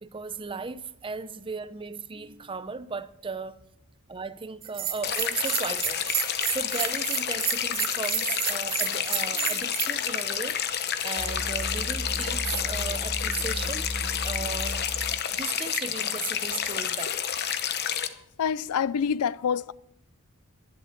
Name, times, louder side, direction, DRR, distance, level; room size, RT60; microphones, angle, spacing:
voice 1, 0.0-3.6 4.1-6.0 6.4-10.6 11.0-13.9 14.2-17.4, right 5 dB, 25° right, 0.6 m, -36 dB
Bell, 4.6-9.9, right 10 dB, 40° right, 1.2 m, -31 dB
sound 1, 5.0-18.1, left 9 dB, 45° left, 0.9 m, -30 dB
sound 2, 11.2-15.3, equal, 10° left, 1.7 m, -35 dB
voice 2, 18.4-19.7, left 7 dB, 85° left, 0.4 m, -26 dB
12.0 x 11.0 x 5.9 m
head